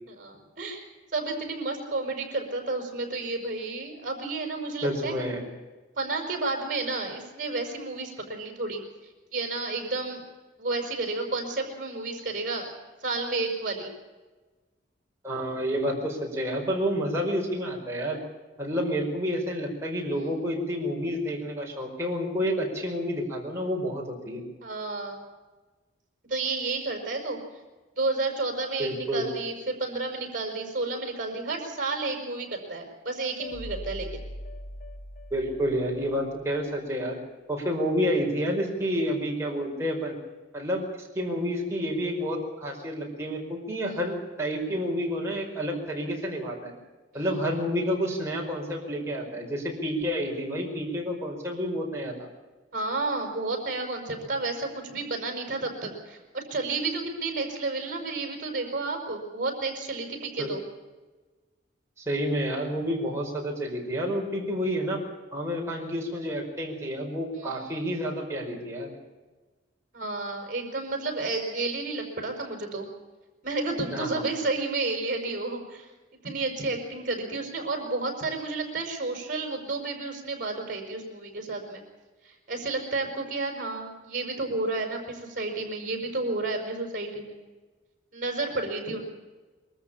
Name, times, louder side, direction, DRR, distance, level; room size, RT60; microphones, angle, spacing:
voice 1, 0.1-0.8 1.1-5.1 6.0-8.8 9.3-10.2 10.6-12.7 13.0-13.9 24.6-25.2 26.3-27.4 28.0-34.1 43.8-44.0 47.1-47.2 52.7-60.6 67.4-67.7 69.9-72.9 73.4-75.9 76.2-81.8 82.2-87.4 88.1-89.0, right 3 dB, 45° right, 3 dB, 5.7 m, -31 dB
voice 2, 4.8-5.4 15.2-18.2 18.6-24.4 28.8-29.3 35.3-37.2 37.5-40.2 40.5-46.7 47.1-52.3 60.4-60.5 62.0-65.0 65.3-68.9 73.9-74.3, equal, 15° right, -2 dB, 5.1 m, -29 dB
sound 1, 33.4-36.6, left 1 dB, 45° left, 1.5 m, -41 dB
23.0 x 14.0 x 8.7 m, 1.2 s
head